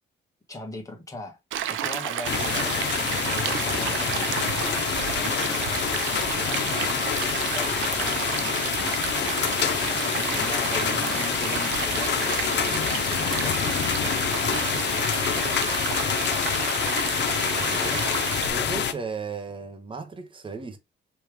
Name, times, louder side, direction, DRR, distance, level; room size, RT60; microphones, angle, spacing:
voice 1, 0.5-1.4 1.7-4.2 5.1-5.8 6.1-7.1 7.5-15.5 17.9-18.1 18.6-18.7, left 2 dB, 15° left, 1.4 m, -40 dB
Stream, 1.5-18.5, right 10 dB, 80° right, 0.6 m, -31 dB
sound 1, 2.2-18.9, left 8 dB, 60° left, 0.8 m, -26 dB
voice 2, 17.4-17.9 18.5-20.8, right 4 dB, 25° right, 1.1 m, -35 dB
3.4 x 3.1 x 4.8 m
cardioid pair, 90°, 20 cm